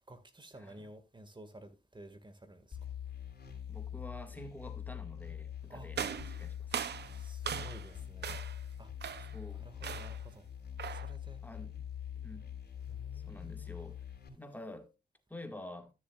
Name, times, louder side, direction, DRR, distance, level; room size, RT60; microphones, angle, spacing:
voice 1, 0.1-2.8 5.7-5.9 7.1-8.4 8.8-8.9 9.5-10.5 10.9-11.4 12.8-13.8, right 1 dB, 25° right, 1.9 m, -53 dB
sound 1, 2.7-14.3, left 9 dB, 60° left, 3.1 m, -44 dB
voice 2, 3.7-6.0 6.4-6.7 9.3-9.7 11.4-11.8 12.2-12.5 13.3-14.0 14.3-14.9 15.3-15.9, left 1 dB, 10° left, 1.8 m, -48 dB
sound 2, 5.9-7.9 8.2-8.6 9.0-9.4 9.8-10.3 10.8-11.2, right 8 dB, 70° right, 0.7 m, -39 dB
13.0 x 7.3 x 2.4 m
cardioid pair, 55°, 18 cm